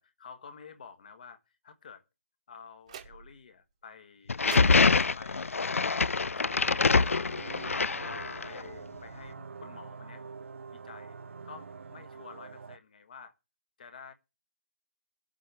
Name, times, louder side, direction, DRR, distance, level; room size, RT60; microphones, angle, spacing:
voice 1, 0.0-2.0 2.5-4.4 5.1-7.9 8.4-10.2 10.7-11.2 11.4-13.3 13.8-14.1, left 6 dB, 40° left, 1.4 m, -50 dB
sound 1, 2.9-3.5 4.5-6.7, right 7 dB, 30° right, 1.4 m, -47 dB
sound 2, 4.3-8.6, left 4 dB, 85° left, 0.5 m, -25 dB
sound 3, 6.4-12.8, right 5 dB, 70° right, 0.5 m, -45 dB
18.5 x 7.6 x 3.4 m
hypercardioid pair, 165°, 7 cm